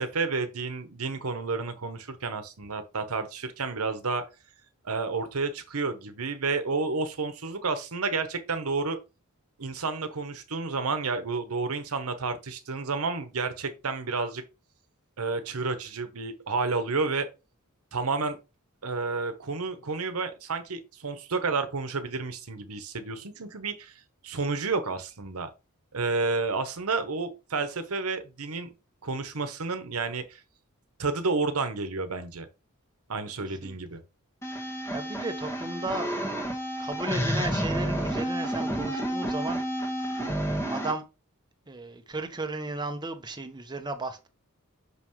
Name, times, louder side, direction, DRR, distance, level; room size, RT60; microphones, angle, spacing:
voice 1, 0.0-4.3 4.8-9.0 9.6-14.4 15.2-17.3 17.9-18.4 18.8-25.5 25.9-28.7 29.0-30.4 31.0-32.5 33.1-34.0, right 4 dB, 75° right, 1.0 m, -30 dB
sound 1, 34.4-40.9, right 1 dB, 15° left, 1.4 m, -30 dB
voice 2, 34.9-36.1 36.8-39.6 40.2-40.4 40.7-41.0 41.7-44.3, right 2 dB, 20° right, 0.8 m, -34 dB
6.1 x 5.6 x 3.1 m
head